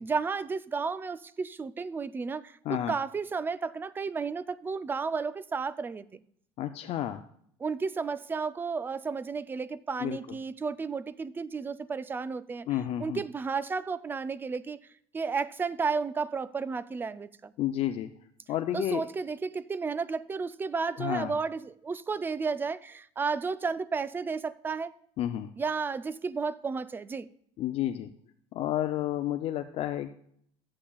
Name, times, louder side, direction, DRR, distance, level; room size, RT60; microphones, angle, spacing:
voice 1, 0.0-6.2 7.6-12.7 13.0-14.8 15.1-17.5 18.7-24.9 25.6-27.3, right 5 dB, 15° right, 0.3 m, -32 dB
voice 2, 2.6-3.0 6.6-7.2 10.0-10.2 12.7-13.2 17.6-18.1 18.5-19.0 21.0-21.3 25.2-25.5 27.6-28.1 28.5-30.1, left 12 dB, 50° left, 0.5 m, -31 dB
13.5 x 8.6 x 2.3 m
cardioid pair, 135°, 13 cm